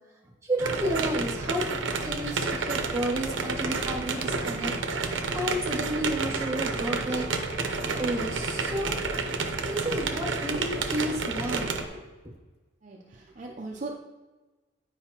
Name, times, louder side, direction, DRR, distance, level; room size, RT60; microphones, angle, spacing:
voice 1, 0.4-1.6 2.0-9.0 9.6-11.7, right 1 dB, 15° right, -1 dB, 1.3 m, -32 dB
sound 1, 0.6-11.9, right 4 dB, 75° right, 0.7 m, -30 dB
Wind instrument woodwind instrument, 5.8-12.1, right 5 dB, 60° left, 0.8 m, -45 dB
voice 2, 12.8-13.9, right 3 dB, 40° right, 0 dB, 0.5 m, -39 dB
9.6 x 4.8 x 2.9 m, 1.2 s
head